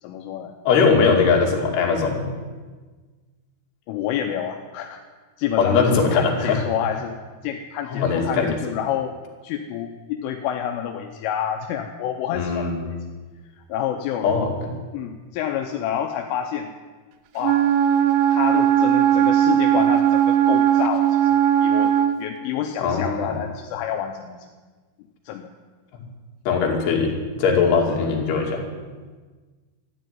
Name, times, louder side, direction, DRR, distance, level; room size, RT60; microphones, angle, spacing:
voice 1, 0.0-1.0 3.9-5.0 5.4-7.2 7.4-9.1 9.4-13.0 13.7-14.3 14.9-16.7 17.3-17.7 18.3-24.4 25.3-25.5, left 9 dB, 85° left, 4 dB, 3.3 m, -28 dB
voice 2, 0.7-2.3 5.6-6.6 7.9-8.6 12.3-12.7 14.2-14.7 22.8-23.4 26.5-27.1 27.4-28.6, left 5 dB, 60° left, 0 dB, 4.2 m, -20 dB
Wind instrument woodwind instrument, 17.4-22.2, right 10 dB, 75° right, 2.9 m, -18 dB
13.5 x 11.0 x 9.4 m, 1.4 s
omnidirectional pair, 5.7 m